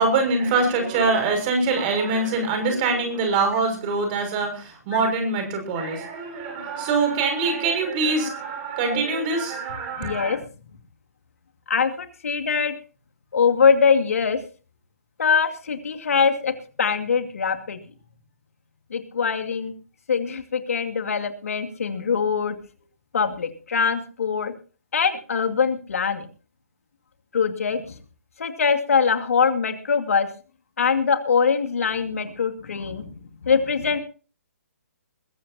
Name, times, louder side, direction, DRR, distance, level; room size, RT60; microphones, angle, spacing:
voice 1, 0.0-10.4, right 3 dB, 35° right, 5 dB, 6.2 m, -24 dB
voice 2, 10.0-10.4 11.7-12.7 13.3-14.4 15.2-16.5 16.8-17.8 18.9-19.7 20.1-22.6 23.1-24.5 24.9-26.3 27.3-27.9 28.4-30.3 30.8-34.0, left 6 dB, 65° left, 6 dB, 2.5 m, -22 dB
21.5 x 15.0 x 2.9 m, 0.37 s
figure-of-eight pair, 130°, 8 cm